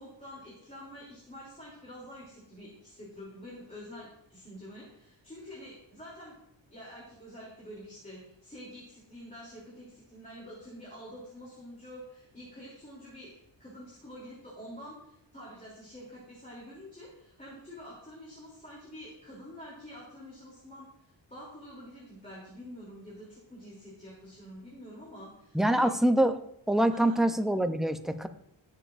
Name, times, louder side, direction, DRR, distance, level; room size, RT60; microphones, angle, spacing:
voice 1, 0.0-6.4 6.7-20.9 21.3-25.9 26.9-27.2, equal, 15° left, -6 dB, 3.0 m, -47 dB
voice 2, 25.5-26.4 26.7-28.3, right 1 dB, ahead, 8 dB, 0.6 m, -25 dB
18.5 x 7.2 x 2.6 m, 0.77 s
wide cardioid pair, 125°, 47 cm